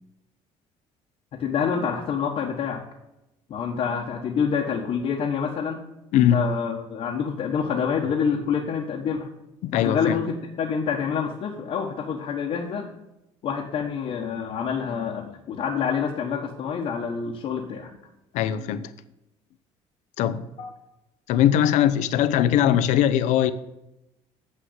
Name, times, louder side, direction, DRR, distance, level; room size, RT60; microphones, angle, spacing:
voice 1, 1.3-2.8 3.5-5.8 6.1-9.3 9.7-12.9 13.4-18.0 20.6-20.7, left 6 dB, 55° left, 0 dB, 1.3 m, -27 dB
voice 2, 6.1-6.4 9.6-10.2 18.3-18.9 20.2-20.5 21.3-23.5, left 10 dB, 75° left, 12 dB, 0.7 m, -21 dB
7.5 x 6.6 x 8.0 m, 0.91 s
cardioid pair, 135°, 12 cm